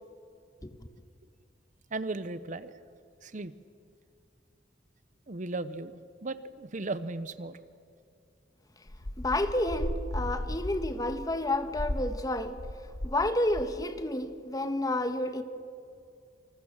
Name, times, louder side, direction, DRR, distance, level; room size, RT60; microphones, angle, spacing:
voice 1, 1.9-2.8 3.2-3.5 5.3-7.6, right 2 dB, 45° right, 0.8 m, -36 dB
sound 1, 8.9-13.2 13.5-13.9, left 1 dB, 60° left, 1.3 m, -36 dB
voice 2, 9.2-12.6 13.0-15.4, left 1 dB, 20° left, 1.4 m, -30 dB
28.0 x 26.0 x 7.4 m
head